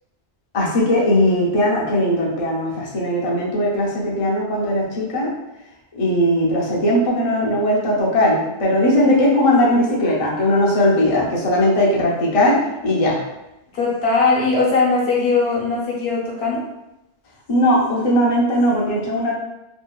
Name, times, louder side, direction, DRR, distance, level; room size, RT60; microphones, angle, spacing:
voice 1, 0.5-5.3 5.9-13.2 17.5-19.3, left 1 dB, 40° left, -5 dB, 0.5 m, -18 dB
voice 2, 13.7-16.6, left 4 dB, 70° left, -4 dB, 1.0 m, -19 dB
2.8 x 2.4 x 2.2 m, 0.92 s
omnidirectional pair, 1.1 m